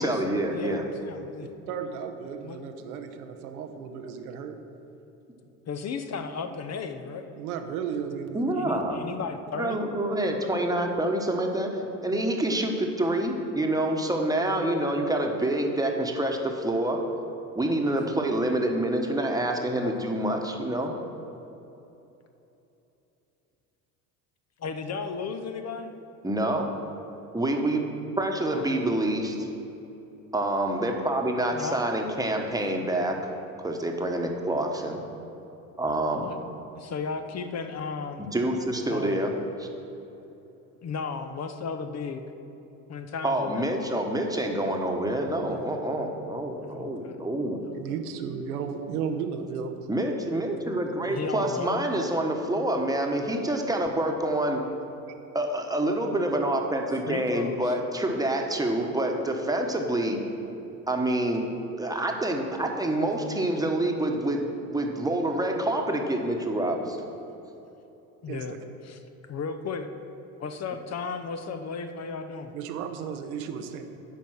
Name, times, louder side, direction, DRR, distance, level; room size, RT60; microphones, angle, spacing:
voice 1, 0.0-0.8 8.3-9.0 9.5-17.0 17.5-20.9 26.2-26.7 27.3-27.9 28.2-29.5 30.3-33.2 33.6-35.0 35.8-36.3 38.2-39.3 39.6-39.7 43.2-47.6 49.9-54.6 55.3-60.2 60.9-61.4 61.8-64.4 64.7-67.0, right 1 dB, 10° right, 2 dB, 1.2 m, -27 dB
voice 2, 0.5-1.5 2.4-2.6 5.7-7.3 8.5-9.8 24.6-25.9 28.5-28.9 31.5-31.8 36.2-36.4 36.7-38.3 38.9-39.4 40.8-42.2 42.9-43.7 45.4-45.7 46.6-47.2 47.7-48.0 51.1-51.7 57.1-57.7 68.2-68.5 68.8-69.9 70.4-72.5, left 5 dB, 35° left, 7 dB, 0.8 m, -35 dB
voice 3, 1.4-4.6 7.3-8.5 13.0-13.1 47.7-49.7 68.3-68.4 72.5-73.8, right 7 dB, 80° right, 6 dB, 0.9 m, -34 dB
9.2 x 5.3 x 6.3 m, 3.0 s
hypercardioid pair, 65°, 43 cm